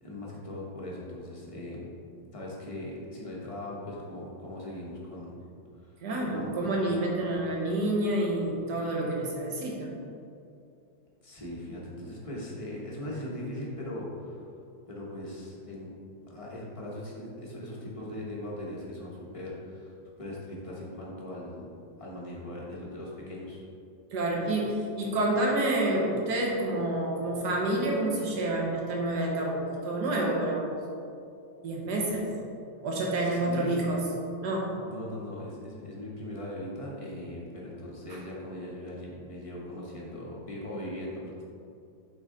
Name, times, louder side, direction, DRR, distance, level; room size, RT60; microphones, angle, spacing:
voice 1, 0.0-1.9 2.3-5.4 6.3-6.7 11.2-14.4 14.9-15.9 16.3-21.7 22.0-23.6 33.1-33.8 34.8-41.4, left 1 dB, 25° left, -4 dB, 0.8 m, -39 dB
voice 2, 6.0-9.9 24.1-30.7 31.6-32.3 32.8-34.1 34.4-34.7, right 1 dB, 60° right, -2 dB, 1.6 m, -28 dB
8.0 x 4.1 x 3.8 m, 2.5 s
omnidirectional pair, 2.1 m